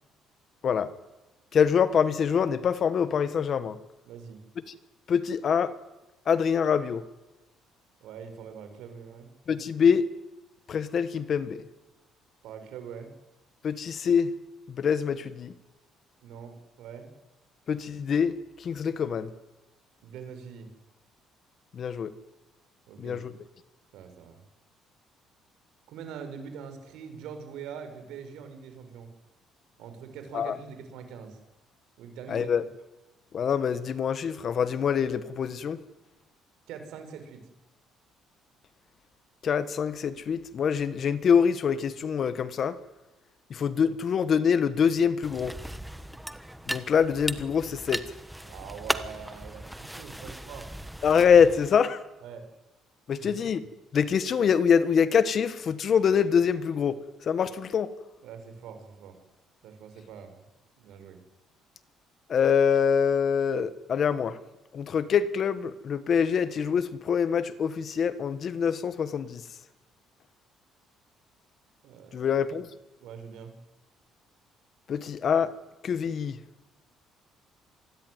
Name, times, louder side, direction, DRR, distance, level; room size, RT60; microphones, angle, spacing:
voice 1, 1.5-3.8 5.1-5.7 6.2-7.0 9.5-10.1 10.7-11.6 13.6-14.3 14.7-15.5 17.7-19.3 21.7-22.1 23.0-23.3 30.3-30.6 32.3-32.6 33.3-35.8 39.4-42.8 43.5-45.6 46.7-48.1 51.0-52.0 53.1-53.6 53.9-57.9 62.3-64.4 64.7-69.4 72.1-72.7 74.9-75.5 75.8-76.4, left 7 dB, 40° left, 1.5 m, -25 dB
voice 2, 4.1-4.4 8.0-9.3 12.4-13.1 16.2-17.1 20.0-20.7 22.9-23.2 23.9-24.4 25.9-29.1 29.8-31.4 32.0-32.5 36.7-37.5 48.4-50.7 52.2-52.5 53.2-53.3 58.2-59.1 59.6-60.3 60.8-61.2 71.8-72.3 73.0-73.6, right 7 dB, 75° right, 6.0 m, -43 dB
sound 1, 45.2-51.8, right 1 dB, 5° right, 1.2 m, -37 dB
27.0 x 20.0 x 9.8 m
cardioid pair, 155°, 0 cm